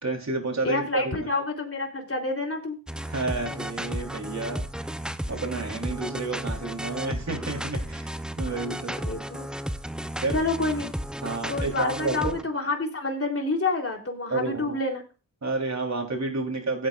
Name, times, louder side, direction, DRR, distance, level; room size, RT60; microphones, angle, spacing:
voice 1, 0.0-1.2 3.1-4.9 5.3-9.1 10.2-10.4 11.2-12.3 14.3-14.8 15.4-16.9, right 3 dB, 40° right, 2 dB, 3.7 m, -30 dB
voice 2, 0.6-2.8 8.5-8.6 8.9-9.4 10.3-10.9 11.5-15.0, left 3 dB, 30° left, 1 dB, 3.5 m, -28 dB
sound 1, 2.9-12.4, equal, ahead, 0.7 m, -33 dB
16.0 x 8.7 x 2.5 m, 0.32 s
supercardioid pair, 45°, 42 cm